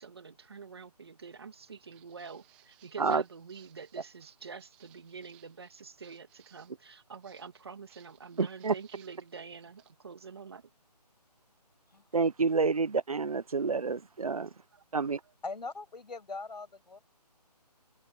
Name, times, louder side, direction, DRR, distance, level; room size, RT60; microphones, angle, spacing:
voice 1, 0.0-10.7 14.7-14.8, right 5 dB, 35° right, 2.4 m, -47 dB
Walk footsteps, 1.6-9.9, right 15 dB, 5° right, 1.5 m, -64 dB
voice 2, 8.4-8.7 12.1-14.5 14.9-15.2, right 4 dB, 55° right, 1.2 m, -28 dB
voice 3, 15.4-17.0, left 3 dB, 80° left, 7.0 m, -41 dB
hypercardioid pair, 175°, 21 cm